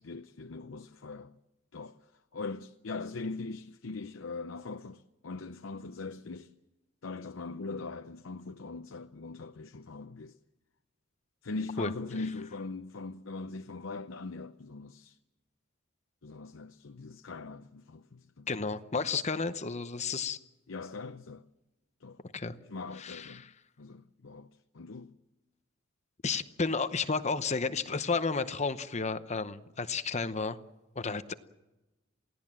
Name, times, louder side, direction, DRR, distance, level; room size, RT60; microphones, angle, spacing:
voice 1, 0.0-1.4 1.7-6.5 7.0-10.4 11.4-15.2 16.2-18.5 20.7-21.4 22.0-22.2 22.6-23.5 23.8-25.2, left 3 dB, 75° left, 0.7 m, -41 dB
voice 2, 18.5-20.4 22.3-22.5 23.0-23.4 26.2-30.6 31.0-31.3, left 4 dB, 35° left, 0.8 m, -32 dB
28.5 x 17.0 x 7.5 m
head